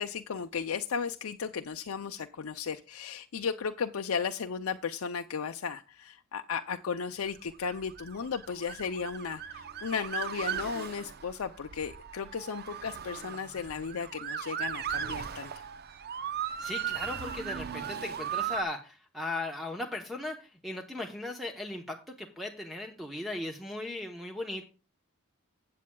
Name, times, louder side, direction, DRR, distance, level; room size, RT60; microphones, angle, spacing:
voice 1, 0.0-15.5, left 6 dB, 75° left, 7 dB, 0.5 m, -35 dB
Motor vehicle (road) / Siren, 7.5-18.6, right 8 dB, 50° right, 0.7 m, -37 dB
voice 2, 16.6-24.7, left 2 dB, ahead, 3 dB, 0.8 m, -37 dB
16.0 x 8.5 x 2.3 m, 0.33 s
head